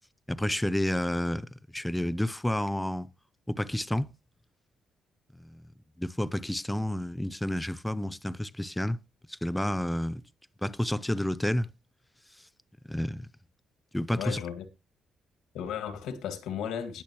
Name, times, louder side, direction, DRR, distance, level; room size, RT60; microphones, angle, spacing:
voice 1, 0.3-3.1 3.5-4.1 5.3-5.6 6.0-9.0 9.3-10.2 10.6-11.7 12.8-13.3 13.9-14.4, left 1 dB, 5° left, 0.7 m, -30 dB
voice 2, 14.2-14.7 15.5-17.0, left 8 dB, 85° left, 2.0 m, -35 dB
19.5 x 6.5 x 3.1 m
cardioid pair, 90°, 0 cm